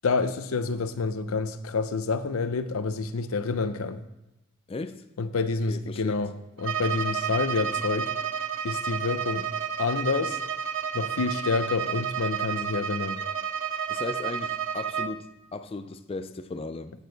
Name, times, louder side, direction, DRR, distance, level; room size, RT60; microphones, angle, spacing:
voice 1, 0.0-4.0 5.2-6.3 6.6-8.1 8.6-9.5 9.8-10.4 10.9-13.2, left 4 dB, 80° left, 0.6 m, -28 dB
voice 2, 4.7-5.1 5.7-6.2 13.9-16.9, left 3 dB, 25° left, 0.3 m, -36 dB
Bowed string instrument, 6.6-15.2, right 7 dB, 60° right, 0.4 m, -31 dB
8.3 x 6.6 x 4.0 m
head